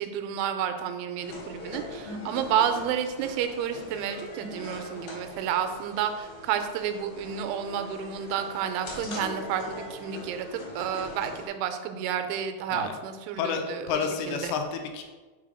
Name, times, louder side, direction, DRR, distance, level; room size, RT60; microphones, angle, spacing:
voice 1, 0.0-14.0 14.3-14.5, right 8 dB, 85° right, 8 dB, 2.9 m, -30 dB
sound 1, 1.2-11.5, left 1 dB, 65° left, 2.9 m, -41 dB
voice 2, 13.4-15.0, left 6 dB, 80° left, 4 dB, 2.7 m, -30 dB
6.5 x 3.7 x 4.8 m, 1.3 s
omnidirectional pair, 5.2 m